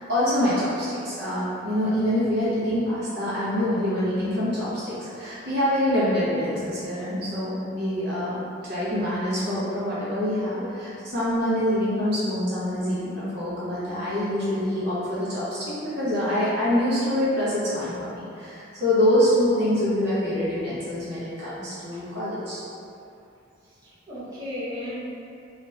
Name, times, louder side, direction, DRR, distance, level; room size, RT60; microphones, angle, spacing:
voice 1, 0.1-22.6, left 1 dB, 55° right, -10 dB, 0.7 m, -25 dB
voice 2, 23.6-25.0, left 1 dB, 20° right, -13 dB, 1.0 m, -35 dB
2.8 x 2.4 x 3.1 m, 2.6 s
head